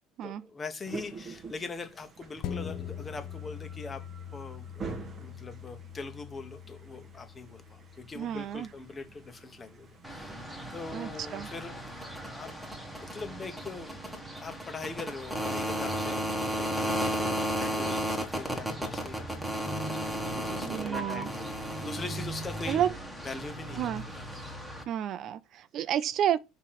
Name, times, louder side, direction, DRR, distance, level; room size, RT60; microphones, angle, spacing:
voice 1, 0.2-4.0 4.3-10.4 10.7-11.7 12.2-12.6 13.0-14.0 14.4-22.8 23.2-24.5, left 4 dB, 20° left, 1.1 m, -42 dB
sound 1, 0.8-13.5, right 4 dB, 30° right, 1.3 m, -48 dB
sound 2, 2.4-11.2 11.7-11.8, left 8 dB, 60° left, 0.6 m, -44 dB
voice 2, 8.2-8.7 10.9-11.5 20.6-21.3 22.7-22.9 23.8-24.0 24.9-26.4, right 10 dB, 50° right, 0.4 m, -30 dB
sound 3, 10.0-24.8, right 1 dB, ahead, 1.5 m, -34 dB
6.6 x 3.1 x 5.8 m
cardioid pair, 130°, 0 cm